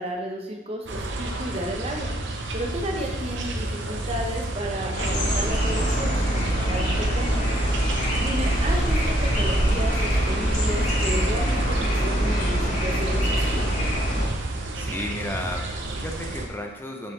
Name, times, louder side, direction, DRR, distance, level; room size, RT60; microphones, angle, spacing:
voice 1, 0.0-2.1 2.5-7.5 8.2-13.6, equal, 30° right, 1 dB, 1.1 m, -33 dB
sound 1, 0.9-16.5, right 2 dB, 55° right, 0.9 m, -29 dB
sound 2, 4.9-14.3, equal, 35° left, 2.5 m, -25 dB
voice 2, 14.7-17.1, left 1 dB, 10° left, 2 dB, 0.8 m, -34 dB
8.3 x 7.1 x 3.4 m, 1.2 s
head